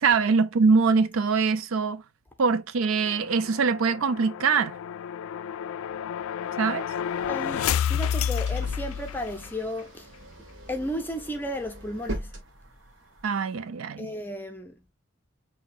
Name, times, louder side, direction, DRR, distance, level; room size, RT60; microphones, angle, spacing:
voice 1, 0.0-2.0 2.4-4.7 6.6-6.9 13.2-14.1, right 5 dB, 85° right, 0.5 m, -23 dB
sound 1, 2.8-9.5, left 8 dB, 90° left, 0.3 m, -30 dB
sound 2, 7.0-13.2, right 1 dB, 70° right, 1.3 m, -41 dB
voice 2, 7.3-10.1 10.7-12.3 14.0-14.8, equal, 10° left, 0.5 m, -34 dB
6.0 x 2.8 x 2.5 m
head